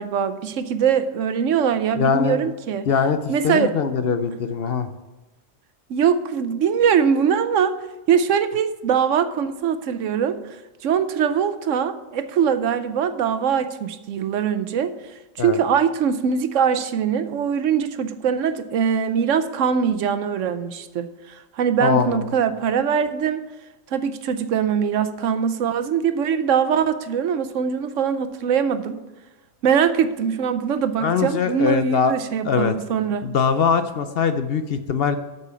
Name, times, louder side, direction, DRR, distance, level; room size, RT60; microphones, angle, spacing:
voice 1, 0.0-2.9 3.3-3.7 5.9-7.8 8.1-10.4 10.8-14.9 15.4-23.4 23.9-29.0 29.6-33.3, right 7 dB, 75° right, 11 dB, 1.0 m, -22 dB
voice 2, 1.9-2.5 2.9-3.2 3.4-4.9 15.4-15.6 21.8-22.3 31.0-32.1 32.4-32.8 33.2-35.2, left 6 dB, 60° left, 9 dB, 0.7 m, -21 dB
8.3 x 6.9 x 5.6 m, 1.1 s
omnidirectional pair, 1.3 m